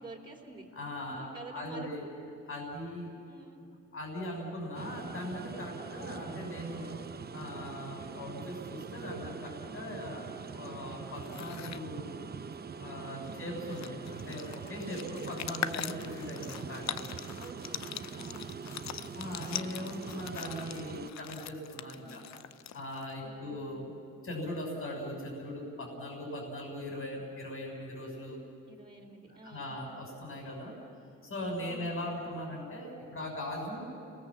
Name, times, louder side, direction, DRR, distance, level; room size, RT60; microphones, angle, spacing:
voice 1, 0.0-0.6 1.1-2.1 3.3-3.6 8.1-8.4 13.1-13.5 17.4-18.5 21.9-22.2 23.2-23.5 28.7-29.7 31.6-31.9, right 2 dB, 15° right, -1 dB, 3.3 m, -50 dB
voice 2, 0.7-2.0 2.5-3.1 3.9-12.3 12.8-17.1 19.1-22.2 22.7-23.9 24.2-28.4 29.3-30.7 31.2-33.9, left 1 dB, 45° left, -1 dB, 6.7 m, -40 dB
sound 1, 4.7-21.1, right 6 dB, 30° right, 0.8 m, -43 dB
sound 2, 11.1-11.8 13.3-13.4 13.6-23.1, left 11 dB, 65° left, 0.7 m, -42 dB
30.0 x 19.5 x 7.5 m, 2.4 s
cardioid pair, 90°, 30 cm